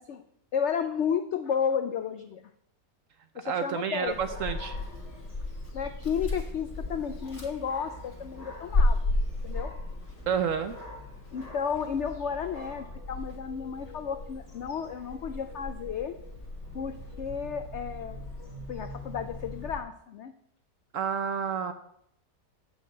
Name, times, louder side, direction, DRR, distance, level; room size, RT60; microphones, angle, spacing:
voice 1, 0.5-2.4 3.3-4.2 5.7-9.1 9.4-9.7 11.3-16.2 16.7-18.2 18.7-20.3, left 7 dB, 80° left, 8 dB, 0.6 m, -32 dB
voice 2, 3.4-4.8 10.3-10.8 20.9-21.7, right 7 dB, 65° right, 9 dB, 0.8 m, -29 dB
Dog, 4.1-19.8, left 2 dB, 40° left, 2.0 m, -35 dB
7.2 x 5.9 x 7.7 m, 0.72 s
omnidirectional pair, 1.8 m